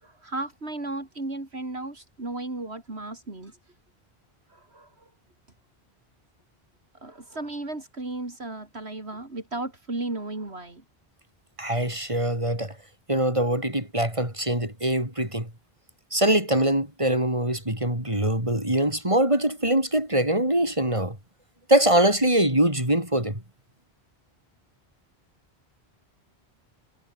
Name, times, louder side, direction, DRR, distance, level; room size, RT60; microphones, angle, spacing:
voice 1, 0.0-3.6 4.5-5.1 7.0-10.8, right 2 dB, 80° right, 4.4 m, -35 dB
voice 2, 11.6-12.7 13.1-15.5 16.1-21.2 21.7-23.4, right 1 dB, 30° right, 6.8 m, -23 dB
omnidirectional pair, 1.1 m